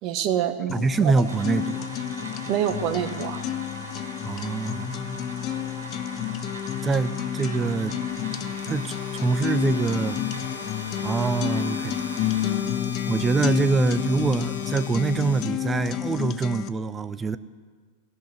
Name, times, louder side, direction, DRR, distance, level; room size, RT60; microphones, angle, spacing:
voice 1, 0.0-1.1 2.5-3.4 8.7-8.8, right 10 dB, 40° right, 11 dB, 0.9 m, -26 dB
sound 1, 0.7-16.7, left 11 dB, 35° left, 0.6 m, -30 dB
voice 2, 0.7-1.9 4.3-5.4 6.8-7.9 8.6-10.2 11.0-12.0 13.1-17.4, right 4 dB, 15° right, 15 dB, 0.5 m, -25 dB
sound 2, 1.2-12.5, right 2 dB, 70° right, 2.9 m, -41 dB
sound 3, 8.1-16.1, left 4 dB, 75° left, 1.5 m, -40 dB
17.5 x 6.3 x 9.9 m, 1.5 s
figure-of-eight pair, 90°, 0 cm